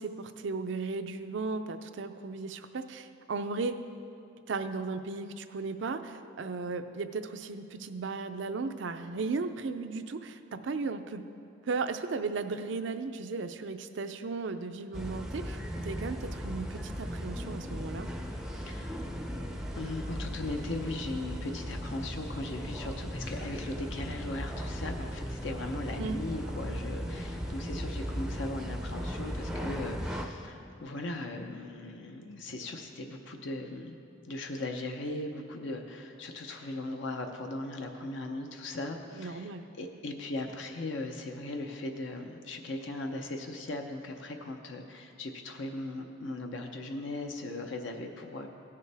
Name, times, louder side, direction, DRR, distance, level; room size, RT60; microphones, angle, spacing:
voice 1, 0.0-3.8 4.5-11.2 11.7-18.1 26.0-26.2 39.1-39.6, right 4 dB, 65° right, 9 dB, 0.5 m, -36 dB
sound 1, 14.9-30.3, equal, 5° right, 0.5 m, -37 dB
voice 2, 18.4-19.1 19.8-34.0 34.2-39.5 39.8-48.5, left 2 dB, 70° left, 4 dB, 0.7 m, -38 dB
16.5 x 6.8 x 3.4 m, 2.7 s
head